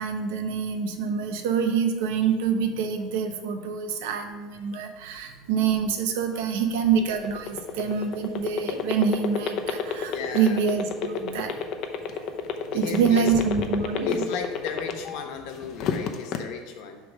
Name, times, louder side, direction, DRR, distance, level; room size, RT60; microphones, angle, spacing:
voice 1, 0.0-11.6 12.1-12.3 12.7-14.3, right 6 dB, 85° right, 6 dB, 1.0 m, -26 dB
voice 2, 6.3-6.8 7.7-7.9 10.1-10.6 12.7-13.3 14.0-17.0, left 6 dB, 70° left, 4 dB, 1.2 m, -36 dB
sound 1, 7.0-15.2 15.6-16.4, left 8 dB, 50° left, 0.7 m, -28 dB
8.0 x 3.5 x 6.3 m, 1.3 s
supercardioid pair, 130°, 0 cm